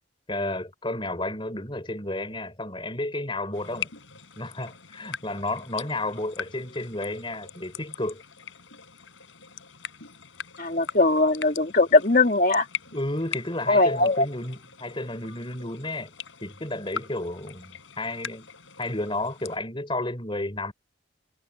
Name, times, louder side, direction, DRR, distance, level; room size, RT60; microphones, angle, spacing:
voice 1, 0.3-3.9 4.4-8.2 12.9-16.1 16.4-18.5 18.8-20.7, left 2 dB, 25° left, 4.1 m, -32 dB
sound 1, 3.5-19.6, left 7 dB, 90° left, 4.9 m, -41 dB
voice 2, 10.6-12.7 13.7-14.3, left 2 dB, 45° left, 2.1 m, -20 dB
head